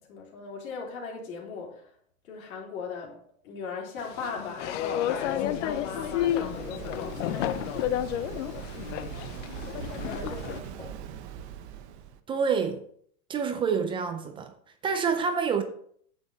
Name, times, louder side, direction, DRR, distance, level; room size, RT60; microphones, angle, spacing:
voice 1, 0.1-1.9 2.3-3.2 3.4-7.6 10.0-11.0, left 4 dB, 80° left, 3.8 m, -38 dB
sound 1, 4.0-10.6, left 12 dB, 60° left, 0.7 m, -31 dB
Waves surf, 4.5-12.2, right 9 dB, 50° right, 1.0 m, -41 dB
voice 2, 12.3-12.8 13.3-14.5 14.8-15.6, right 6 dB, 15° right, 0.4 m, -27 dB
9.4 x 7.1 x 4.1 m
supercardioid pair, 140°, 42 cm